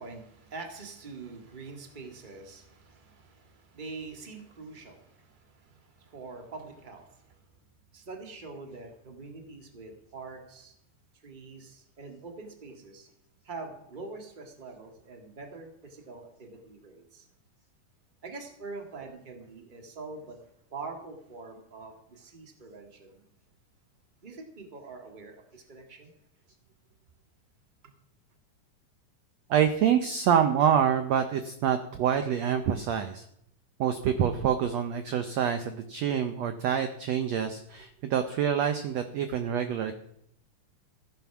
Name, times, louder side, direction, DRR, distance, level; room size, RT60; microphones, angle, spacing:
voice 1, 0.0-7.4 7.9-10.8 11.1-13.1 13.4-17.3 18.2-20.4 20.7-23.2 24.2-26.1, right 3 dB, 20° right, 3 dB, 1.4 m, -44 dB
voice 2, 29.5-33.3 33.8-39.9, right 8 dB, 70° right, 8 dB, 1.6 m, -26 dB
15.0 x 9.3 x 6.0 m, 0.73 s
omnidirectional pair, 3.8 m